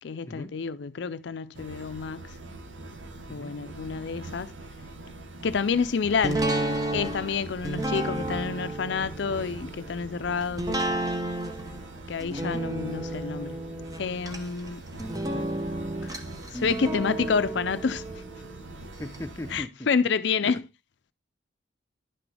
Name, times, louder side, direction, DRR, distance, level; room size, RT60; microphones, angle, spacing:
voice 1, 0.0-2.3 3.3-4.5 5.4-6.4 6.9-10.8 12.1-13.6 14.0-14.8 16.0-16.2 16.5-18.0 19.5-20.6, left 5 dB, 70° left, 0.4 m, -28 dB
sound 1, 1.5-19.6, right 2 dB, 80° right, 1.1 m, -43 dB
sound 2, 6.2-19.2 19.6-19.7, right 1 dB, 20° right, 0.9 m, -32 dB
voice 2, 15.1-15.5 19.0-19.7 20.4-20.6, left 1 dB, 15° left, 0.7 m, -38 dB
10.5 x 6.1 x 3.3 m
head